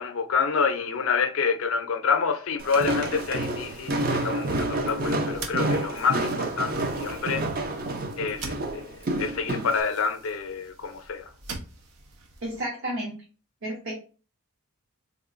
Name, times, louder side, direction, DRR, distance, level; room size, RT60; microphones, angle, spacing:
voice 1, 0.0-7.5 8.2-11.3, left 5 dB, 60° left, 0.5 m, -28 dB
Walk footsteps, 2.6-9.8, right 1 dB, 40° right, 0.5 m, -29 dB
sound 1, 3.1-12.6, right 3 dB, 85° right, 0.7 m, -45 dB
voice 2, 12.4-13.2 13.6-14.0, right 1 dB, 60° right, 0.8 m, -32 dB
3.7 x 2.9 x 2.5 m
head